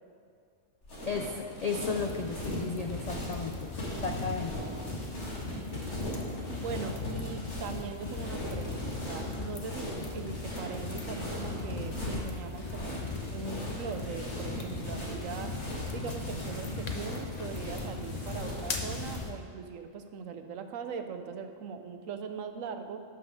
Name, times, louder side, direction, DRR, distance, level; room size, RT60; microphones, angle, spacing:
sound 1, 0.8-19.3, left 1 dB, 60° left, 2.3 m, -39 dB
voice 1, 1.1-3.7 4.0-4.7, left 4 dB, 90° left, 4 dB, 0.3 m, -34 dB
sound 2, 1.9-19.3, left 4 dB, 35° left, 0.8 m, -40 dB
voice 2, 5.5-6.1 6.6-15.5 15.9-23.0, right 5 dB, 80° right, 8 dB, 1.1 m, -40 dB
12.0 x 6.2 x 4.8 m, 2.2 s
omnidirectional pair, 1.3 m